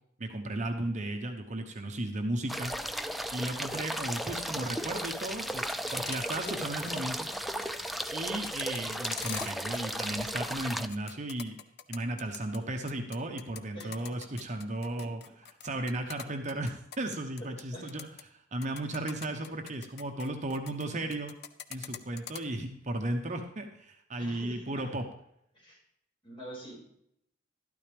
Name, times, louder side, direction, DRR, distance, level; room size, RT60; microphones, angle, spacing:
voice 1, 0.2-2.7 3.3-7.3 8.1-11.6 11.9-15.2 15.6-21.3 21.7-25.0, right 1 dB, 40° right, 4 dB, 0.9 m, -35 dB
sound 1, 2.5-10.9, equal, ahead, 0.4 m, -35 dB
sound 2, 5.0-6.6 6.9-7.0 7.3-10.2 10.5-12.6 12.9-17.6 17.9-18.2 18.6-20.9 21.1-22.4, left 9 dB, 60° left, 0.7 m, -43 dB
voice 2, 13.7-14.2 17.7-17.9 24.2-24.8 25.5-25.8 26.2-26.7, right 1 dB, 30° left, -3 dB, 5.6 m, -45 dB
12.5 x 12.0 x 3.4 m, 0.74 s
head